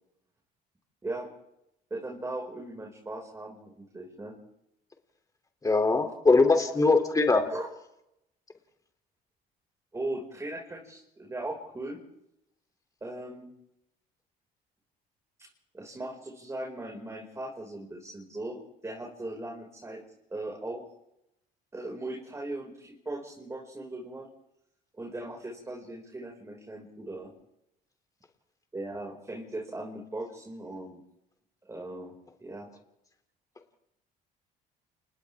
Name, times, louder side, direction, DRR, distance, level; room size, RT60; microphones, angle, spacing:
voice 1, 1.9-4.3 7.5-7.7 9.9-12.0 13.0-13.5 15.4-15.5 15.7-18.6 18.8-20.0 20.3-20.8 21.7-24.3 25.0-27.3 28.7-31.0 31.6-32.1 32.4-32.7, right 2 dB, 15° right, -2 dB, 5.7 m, -38 dB
voice 2, 5.6-7.4, left 3 dB, 20° left, 4 dB, 3.2 m, -21 dB
29.5 x 28.0 x 3.7 m, 0.83 s
cardioid pair, 110°, 17 cm